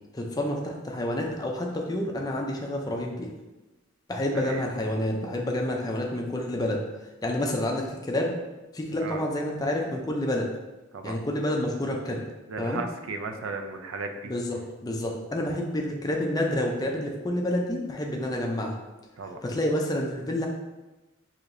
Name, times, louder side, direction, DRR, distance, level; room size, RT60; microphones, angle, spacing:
voice 1, 0.1-3.3 4.1-6.8 7.2-8.3 8.7-10.5 11.0-12.2 12.6-12.8 14.2-18.8 19.4-20.5, left 1 dB, 20° left, 1 dB, 0.4 m, -29 dB
voice 2, 12.5-14.3 19.2-19.4, right 3 dB, 85° right, 6 dB, 0.4 m, -35 dB
4.6 x 2.8 x 2.6 m, 1.1 s
head